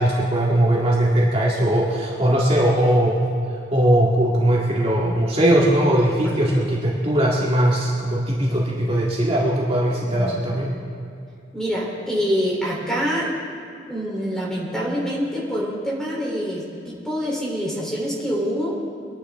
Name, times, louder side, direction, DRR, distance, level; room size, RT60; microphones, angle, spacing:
voice 1, 0.0-3.2 3.7-10.7, right 1 dB, 35° right, -5 dB, 2.0 m, -19 dB
voice 2, 10.0-10.4 11.5-13.3 13.9-18.8, equal, 5° left, -4 dB, 3.4 m, -26 dB
24.5 x 11.5 x 3.6 m, 2.5 s
head